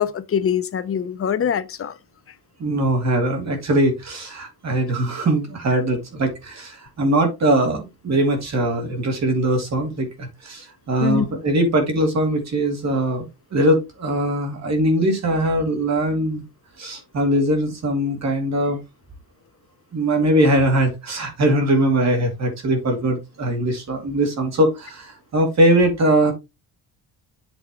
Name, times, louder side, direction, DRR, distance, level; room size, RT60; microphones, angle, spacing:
voice 1, 0.0-1.9 11.0-11.2, left 8 dB, 35° left, 0.6 m, -23 dB
voice 2, 2.6-13.3 13.5-16.4 16.8-18.8 19.9-26.3, right 1 dB, 45° right, 2.5 m, -21 dB
8.1 x 5.8 x 3.0 m
cardioid pair, 170°, 39 cm